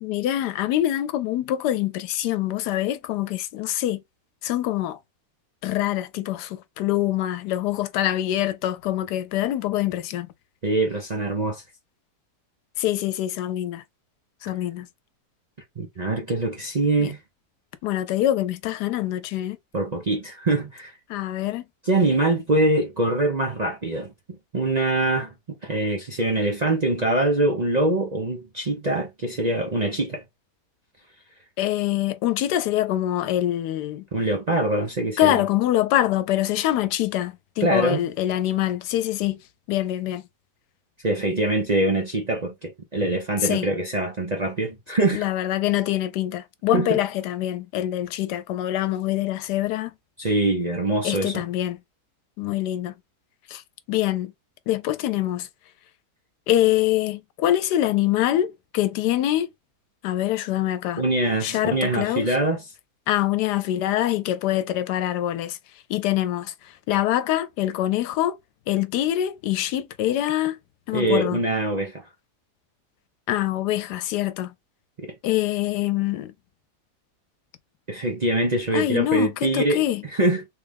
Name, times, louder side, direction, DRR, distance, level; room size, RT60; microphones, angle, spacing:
voice 1, 0.0-4.0 4.4-5.0 5.6-10.3 12.8-13.8 14.4-14.9 17.0-17.1 17.8-19.6 21.1-21.6 31.6-34.0 35.2-39.4 39.7-40.2 43.4-43.7 45.1-49.9 51.0-51.8 52.4-52.9 53.5-53.6 53.9-54.3 54.7-55.5 56.5-59.5 60.0-61.0 61.4-62.3 63.1-65.6 65.9-66.5 66.9-68.4 68.7-70.6 70.9-71.4 73.3-74.5 75.2-76.3 78.7-80.0, left 13 dB, 85° left, 1.2 m, -24 dB
voice 2, 10.6-11.6 15.8-17.2 19.7-20.9 21.8-24.1 24.5-25.3 25.6-30.2 34.1-35.4 37.6-38.0 41.0-45.3 46.7-47.0 50.2-51.4 61.0-62.6 70.9-72.0 75.0-75.1 77.9-80.5, right 2 dB, 40° right, 0.6 m, -24 dB
3.3 x 2.4 x 3.4 m
omnidirectional pair, 1.7 m